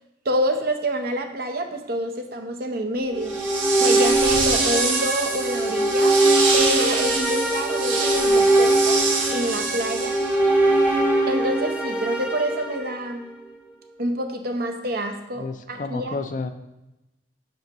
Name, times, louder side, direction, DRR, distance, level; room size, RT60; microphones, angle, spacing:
voice 1, 0.2-3.4 3.8-6.2 6.5-9.0 9.3-10.1 10.4-10.8 11.3-13.3 14.0-16.2, right 1 dB, 50° right, 5 dB, 0.8 m, -27 dB
sound 1, 3.1-13.3, right 1 dB, 10° right, 0.9 m, -22 dB
sound 2, 3.2-10.5, right 4 dB, 85° right, 1.4 m, -26 dB
voice 2, 15.4-16.5, left 3 dB, 40° left, 8 dB, 0.4 m, -30 dB
8.0 x 5.7 x 2.9 m, 0.94 s
head